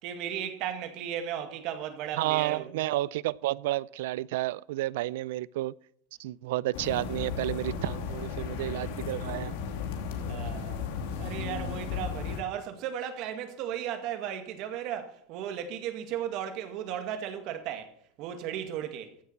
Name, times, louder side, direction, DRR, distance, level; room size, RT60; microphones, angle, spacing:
voice 1, 0.0-2.7 10.3-10.8 11.2-17.9 18.2-19.1, right 9 dB, 45° right, 2.0 m, -35 dB
voice 2, 2.2-5.7 6.2-9.6, right 16 dB, 80° right, 0.4 m, -31 dB
sound 1, 6.7-12.4, left 6 dB, 70° left, 2.5 m, -35 dB
15.5 x 7.3 x 5.9 m
supercardioid pair, 170°, 0 cm